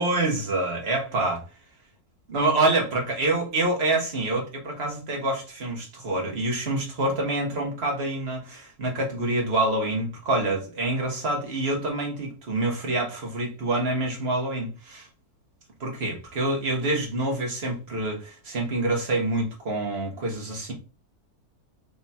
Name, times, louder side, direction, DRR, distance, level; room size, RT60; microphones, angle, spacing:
voice 1, 0.0-1.4 2.3-15.1 15.8-20.7, right 2 dB, 45° right, 0 dB, 1.6 m, -26 dB
3.6 x 3.0 x 4.1 m, 0.32 s
omnidirectional pair, 1.6 m